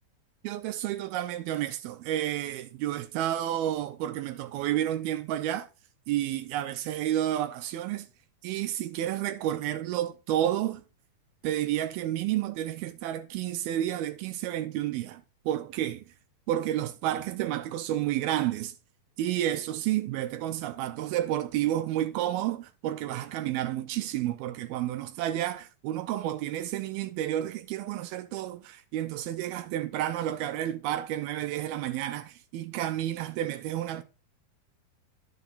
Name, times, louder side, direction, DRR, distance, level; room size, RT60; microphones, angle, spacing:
voice 1, 0.4-5.7 6.1-8.1 8.4-10.8 11.4-16.0 16.5-18.7 19.2-34.0, right 12 dB, 80° right, 2.6 m, -30 dB
11.5 x 6.9 x 4.1 m
omnidirectional pair, 4.4 m